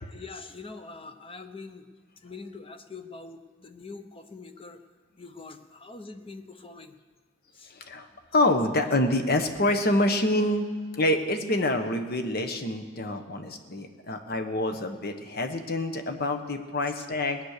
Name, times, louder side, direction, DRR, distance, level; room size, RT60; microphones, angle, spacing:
voice 1, 0.0-1.9 2.2-4.8 5.2-6.9 7.5-7.7, left 3 dB, 30° left, 8 dB, 0.9 m, -44 dB
voice 2, 7.7-17.4, left 1 dB, 50° left, 6 dB, 1.2 m, -27 dB
19.5 x 9.5 x 6.7 m, 1.4 s
head